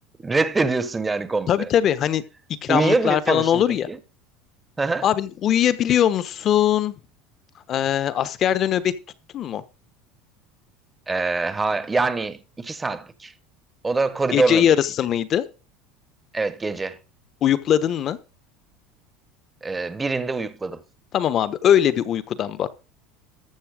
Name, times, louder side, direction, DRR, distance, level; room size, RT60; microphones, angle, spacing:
voice 1, 0.2-1.7 2.7-4.0 4.8-5.1 11.1-13.3 13.8-14.7 16.3-17.0 19.6-20.8, right 3 dB, 15° right, 1.0 m, -24 dB
voice 2, 1.5-2.2 2.6-3.9 5.0-6.9 7.7-8.9 9.3-9.6 14.3-15.4 17.4-18.2 21.1-22.7, left 10 dB, 40° left, 1.0 m, -21 dB
13.5 x 7.0 x 4.9 m
supercardioid pair, 130°, 0 cm